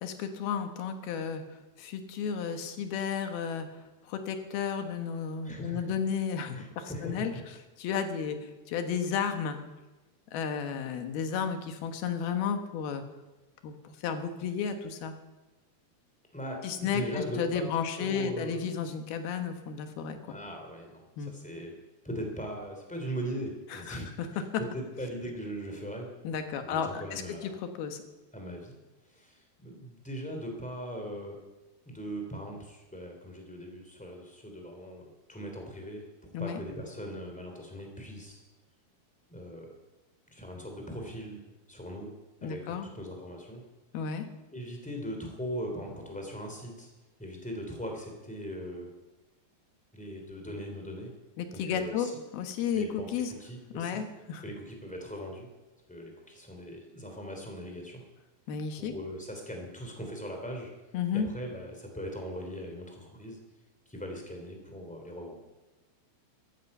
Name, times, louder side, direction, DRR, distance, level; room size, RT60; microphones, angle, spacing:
voice 1, 0.0-1.4 1.8-3.7 4.1-7.3 7.8-9.6 10.3-13.0 13.6-15.1 16.6-20.4 21.2-21.3 23.7-24.4 26.2-28.0 36.3-36.6 42.4-42.9 43.9-44.3 51.4-52.1 52.3-53.3 53.7-54.4 58.5-58.9 60.9-61.3, left 7 dB, 70° left, 7 dB, 3.1 m, -33 dB
voice 2, 5.4-5.9 6.6-7.4 16.3-17.7 18.0-18.6 20.2-21.7 22.0-24.4 24.7-26.1 26.6-27.6 28.3-28.7 29.1-31.4 31.8-36.1 36.4-38.4 39.3-39.7 40.3-41.4 41.7-42.1 42.4-43.6 44.5-46.9 47.2-48.9 49.9-51.1 51.5-52.1 52.7-54.0 54.4-55.5 55.9-58.0 58.8-60.7 61.1-63.4 63.9-65.4, equal, ahead, 2 dB, 2.2 m, -40 dB
14.5 x 14.5 x 5.5 m, 1.1 s
omnidirectional pair, 4.7 m